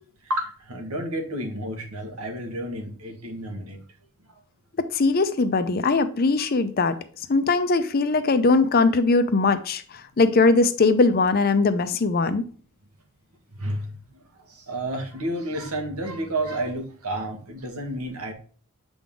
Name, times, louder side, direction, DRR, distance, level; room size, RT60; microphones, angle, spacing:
voice 1, 0.2-3.8 6.9-7.0 13.5-14.2 14.5-18.3, right 1 dB, 85° right, 4 dB, 1.5 m, -31 dB
voice 2, 4.8-7.0 7.3-12.4, left 3 dB, 45° left, 11 dB, 0.5 m, -20 dB
7.0 x 3.8 x 3.6 m, 0.43 s
head